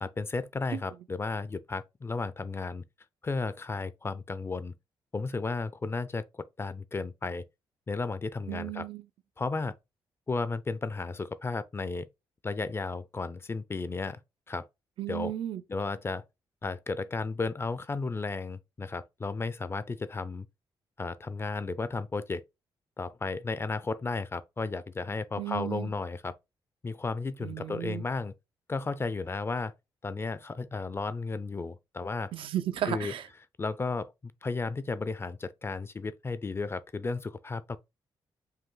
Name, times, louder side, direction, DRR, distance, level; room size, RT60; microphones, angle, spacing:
voice 1, 0.0-2.8 3.2-4.7 5.1-7.5 7.9-8.9 9.4-9.7 10.3-12.1 12.4-14.2 14.5-14.7 15.1-15.3 15.7-16.2 16.6-20.5 21.0-22.4 23.0-26.3 26.8-28.3 28.7-29.7 30.0-32.3 32.9-33.1 33.6-37.8, left 3 dB, 25° left, 0.5 m, -34 dB
voice 2, 8.5-9.0 15.0-15.6 25.4-25.9 27.4-28.0 32.3-33.2, right 12 dB, 75° right, 0.5 m, -34 dB
5.4 x 2.2 x 3.7 m
cardioid pair, 80°, 9 cm